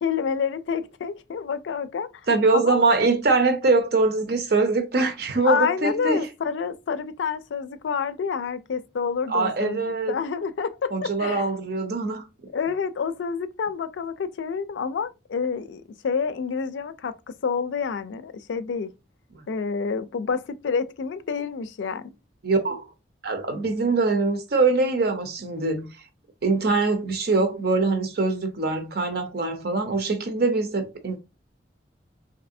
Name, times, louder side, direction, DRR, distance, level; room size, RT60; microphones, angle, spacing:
voice 1, 0.0-2.1 2.5-2.8 5.4-11.4 12.5-18.9 19.5-22.2, left 6 dB, 80° left, 0.4 m, -28 dB
voice 2, 2.3-6.3 9.3-10.2 10.9-12.5 19.3-19.4 22.4-22.8 23.2-26.0 26.4-31.2, right 3 dB, 60° right, 0.6 m, -23 dB
3.1 x 2.6 x 2.6 m
head